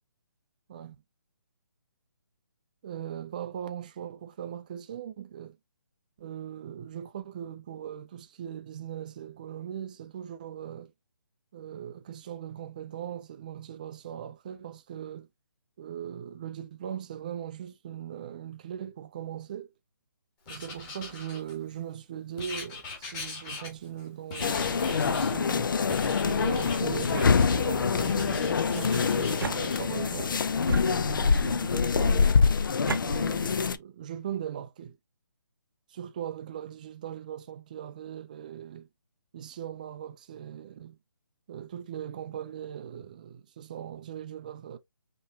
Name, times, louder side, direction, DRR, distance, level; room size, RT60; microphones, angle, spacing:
voice 1, 2.8-5.6 6.2-10.9 11.5-15.3 15.8-19.7 20.5-25.7 26.2-30.4 30.9-32.4 33.0-35.0 35.9-38.9 39.3-41.0 41.5-44.8, right 9 dB, 20° right, 0.4 m, -39 dB
Writing, 20.5-21.8 22.4-24.0 24.3-25.4 25.9-27.6 27.9-29.8, left 3 dB, 15° left, 1.6 m, -41 dB
sound 1, 24.4-33.8, left 5 dB, 65° left, 0.5 m, -25 dB
sound 2, 26.9-27.9 28.9-30.1 30.6-31.5 32.3-33.1, right 5 dB, 70° right, 0.6 m, -38 dB
5.6 x 3.0 x 2.7 m
hypercardioid pair, 165°, 12 cm